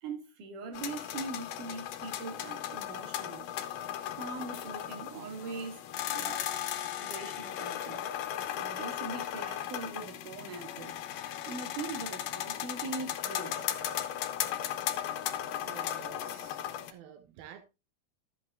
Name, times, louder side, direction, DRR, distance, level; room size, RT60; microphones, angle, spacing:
voice 1, 0.0-3.5 4.1-5.8 6.1-6.6 7.0-8.0 8.6-10.9 11.5-13.7, right 4 dB, 60° right, 3.4 m, -41 dB
sound 1, 0.7-16.9, left 11 dB, 75° left, 2.5 m, -36 dB
voice 2, 15.2-16.6 16.9-17.6, right 10 dB, 90° right, 2.9 m, -52 dB
13.0 x 8.3 x 2.4 m
omnidirectional pair, 4.2 m